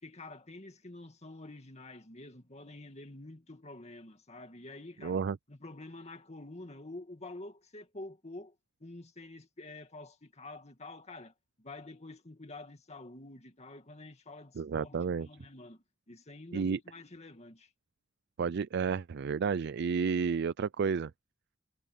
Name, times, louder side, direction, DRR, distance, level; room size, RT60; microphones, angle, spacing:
voice 1, 0.0-8.6 8.8-17.7, left 2 dB, 35° left, 2.2 m, -48 dB
voice 2, 5.0-5.4 14.6-15.3 16.5-16.8 18.4-21.1, right 5 dB, 55° right, 0.4 m, -31 dB
head